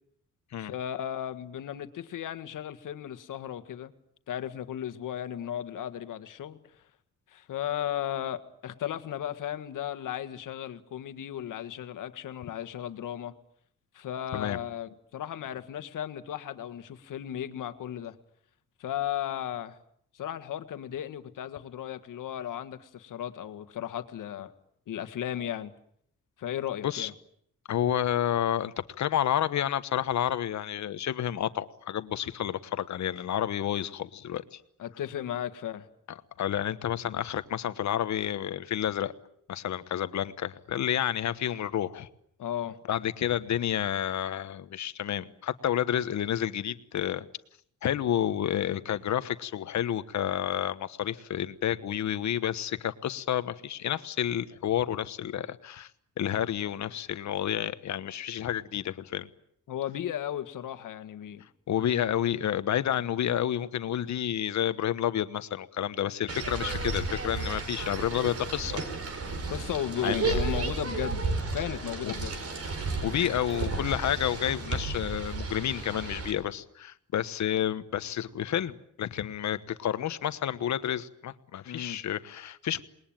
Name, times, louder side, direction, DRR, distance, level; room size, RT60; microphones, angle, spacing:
voice 1, 0.6-3.9 4.3-6.6 7.3-13.3 13.9-18.2 18.8-19.8 20.1-24.5 24.9-25.7 26.4-27.1 34.8-35.9 42.4-42.8 59.7-61.4 69.5-71.2 71.5-72.4 81.7-82.0, left 10 dB, 80° left, 1.8 m, -35 dB
voice 2, 27.7-34.6 36.4-39.1 39.5-42.1 42.9-47.3 47.8-55.9 56.2-59.3 61.7-68.8 70.0-70.4 72.0-72.1 73.0-82.8, left 10 dB, 65° left, 1.3 m, -30 dB
sound 1, 66.3-76.3, right 3 dB, 50° right, 4.7 m, -33 dB
28.0 x 21.0 x 9.0 m
wide cardioid pair, 180°, 31 cm